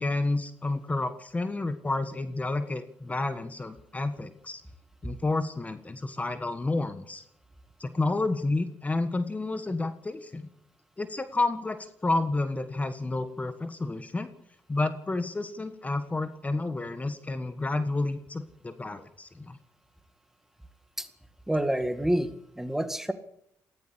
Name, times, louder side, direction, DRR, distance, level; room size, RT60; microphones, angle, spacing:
voice 1, 0.0-4.6 5.0-7.2 7.8-10.5 11.0-14.3 14.7-19.6, left 2 dB, 25° left, 11 dB, 1.5 m, -30 dB
voice 2, 21.5-23.1, right 1 dB, 5° right, 10 dB, 2.0 m, -28 dB
19.5 x 15.5 x 8.5 m, 0.74 s
cardioid pair, 80°, 6 cm